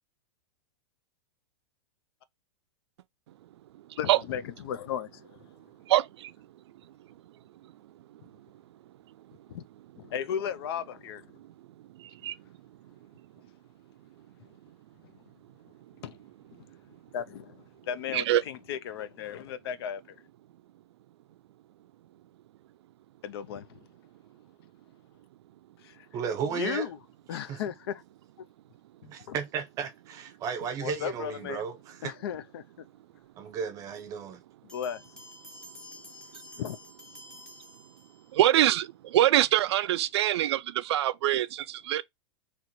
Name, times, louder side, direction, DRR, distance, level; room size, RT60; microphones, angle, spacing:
voice 1, 4.0-5.4 9.5-9.7 10.0-11.3 16.0-16.2 16.6-16.7 17.1-20.2 23.2-23.8 25.8-26.1 26.5-27.0 27.3-28.0 29.0-29.3 30.8-31.6 32.0-32.9 34.6-35.0 36.6-36.8, left 9 dB, 60° left, 0.5 m, -35 dB
voice 2, 5.9-6.3 11.4-11.5 12.0-12.3 18.1-18.4 36.3-36.4 38.3-42.0, right 13 dB, 65° right, 0.4 m, -25 dB
voice 3, 26.1-26.9 27.5-27.6 29.0-32.1 33.4-34.4, right 6 dB, 20° right, 0.6 m, -34 dB
sound 1, 34.7-38.5, left 1 dB, 5° left, 0.9 m, -50 dB
3.0 x 3.0 x 4.1 m
supercardioid pair, 160°, 15 cm